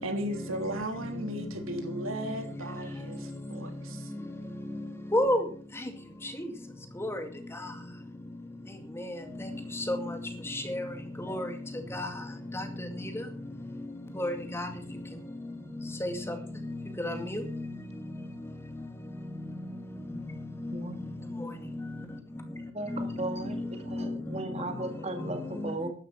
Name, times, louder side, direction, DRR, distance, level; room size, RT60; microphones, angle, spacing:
voice 1, 0.0-4.1, right 1 dB, 80° right, 3.3 m, -36 dB
voice 2, 5.1-5.4 7.0-7.2 9.0-9.1 9.8-10.0 10.5-10.9 11.2-11.5 11.9-12.1 12.5-12.7 14.2-14.7 16.0-16.4 17.0-17.4 22.9-23.1, left 1 dB, 10° left, 2.2 m, -29 dB
voice 3, 20.7-21.2 22.7-23.6 23.9-25.9, right 2 dB, 30° right, 1.8 m, -36 dB
12.5 x 11.0 x 5.9 m
head